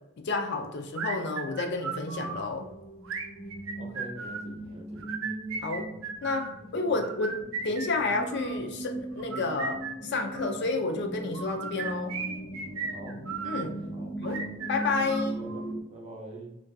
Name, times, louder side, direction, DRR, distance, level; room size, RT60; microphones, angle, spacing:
voice 1, 0.2-2.7 5.6-5.9 6.2-12.2 13.4-13.8 14.2-14.4 14.7-15.4, left 3 dB, 60° left, 4 dB, 0.4 m, -30 dB
sound 1, 0.9-15.8, right 1 dB, 80° left, 1.0 m, -39 dB
sound 2, 0.9-2.5 3.0-4.5 5.0-6.5 7.0-8.6 9.2-10.6 11.3-13.7 14.2-15.7, right 5 dB, 85° right, 0.4 m, -36 dB
voice 2, 3.8-5.2 6.8-7.0 12.9-13.2 13.9-14.1 15.2-16.6, right 1 dB, 35° right, 1 dB, 0.5 m, -45 dB
2.5 x 2.2 x 2.6 m, 0.84 s
head